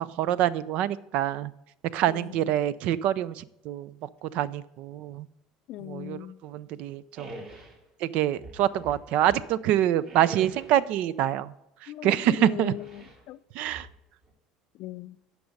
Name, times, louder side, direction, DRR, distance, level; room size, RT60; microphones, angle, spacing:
voice 1, 0.0-1.5 1.9-3.9 4.2-5.3 5.8-7.3 8.0-11.5 12.0-12.7 13.5-13.9, right 12 dB, 65° right, 18 dB, 0.4 m, -26 dB
voice 2, 2.1-2.5 5.7-6.4 11.9-13.4 14.8-15.2, left 14 dB, 65° left, 16 dB, 0.4 m, -38 dB
sound 1, 7.2-7.8 8.3-9.5 10.0-10.8 12.7-13.2 13.6-14.3, right 1 dB, 45° right, 3.3 m, -45 dB
10.0 x 6.0 x 5.2 m, 0.86 s
supercardioid pair, 95°, 2 cm